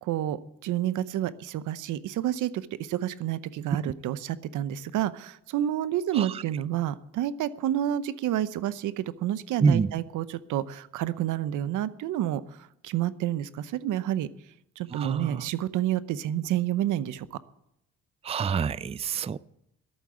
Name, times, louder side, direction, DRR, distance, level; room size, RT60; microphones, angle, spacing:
voice 1, 0.0-12.4 12.8-14.3 14.8-17.4, right 12 dB, 85° right, 16 dB, 0.8 m, -29 dB
voice 2, 9.6-9.9 14.9-15.5 18.2-19.4, right 5 dB, 20° right, 19 dB, 0.4 m, -26 dB
11.5 x 8.6 x 9.6 m, 0.81 s
cardioid pair, 90°, 30 cm